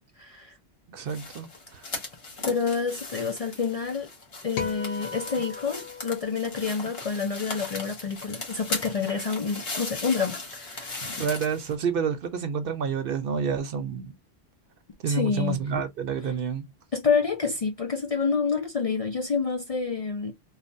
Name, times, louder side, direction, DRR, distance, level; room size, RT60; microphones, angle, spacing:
voice 1, 0.2-0.6 2.4-4.1 4.4-11.2 15.1-15.6 16.9-20.3, left 5 dB, 45° left, 0.5 m, -28 dB
voice 2, 0.9-1.8 11.2-14.1 15.0-16.7, right 6 dB, 60° right, 0.8 m, -29 dB
sound 1, 1.1-11.7, left 3 dB, 65° left, 1.5 m, -38 dB
sound 2, 4.6-7.0, left 6 dB, 85° left, 0.9 m, -38 dB
3.2 x 2.1 x 2.5 m
omnidirectional pair, 1.1 m